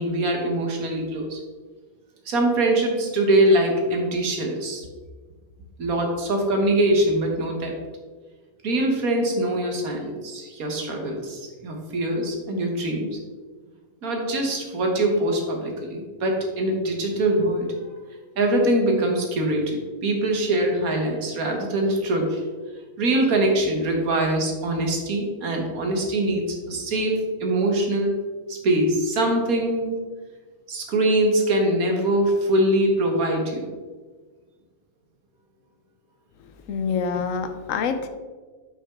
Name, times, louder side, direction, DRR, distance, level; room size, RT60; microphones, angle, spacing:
voice 1, 0.0-1.4 2.3-4.9 5.8-7.7 8.6-13.2 14.0-17.9 18.4-22.4 23.0-28.1 28.5-30.0 30.7-33.7, right 1 dB, 90° right, 1 dB, 1.8 m, -23 dB
voice 2, 36.4-38.1, left 6 dB, 70° left, 9 dB, 1.1 m, -27 dB
8.0 x 6.0 x 3.6 m, 1.4 s
omnidirectional pair, 1.5 m